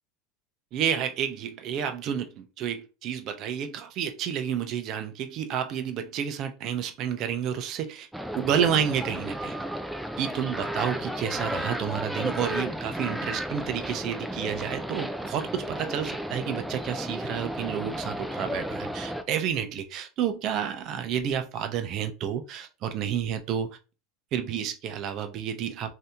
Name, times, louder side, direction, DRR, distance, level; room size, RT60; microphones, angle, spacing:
voice 1, 0.7-8.1 8.3-9.6 10.2-23.8 24.3-25.9, right 8 dB, 45° right, 0.6 m, -30 dB
sound 1, 8.1-19.2, equal, 5° right, 0.4 m, -33 dB
2.8 x 2.7 x 3.5 m
supercardioid pair, 125°, 0 cm